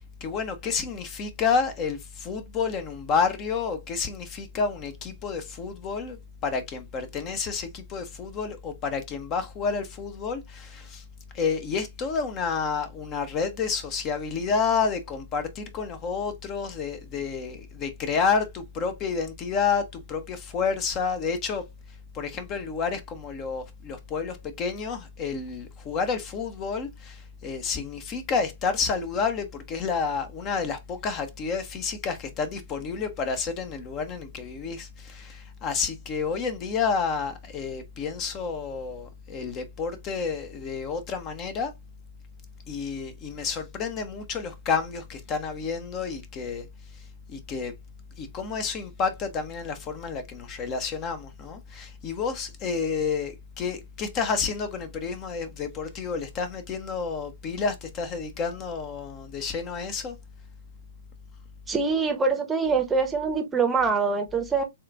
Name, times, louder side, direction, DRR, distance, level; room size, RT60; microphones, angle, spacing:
voice 1, 0.2-6.2 6.4-11.0 11.3-21.6 22.1-41.7 42.7-46.7 47.3-47.7 48.2-60.2, left 5 dB, 25° left, 0.9 m, -30 dB
voice 2, 61.7-64.6, right 4 dB, 10° right, 0.9 m, -24 dB
7.3 x 2.5 x 2.4 m
figure-of-eight pair, 115°, 0 cm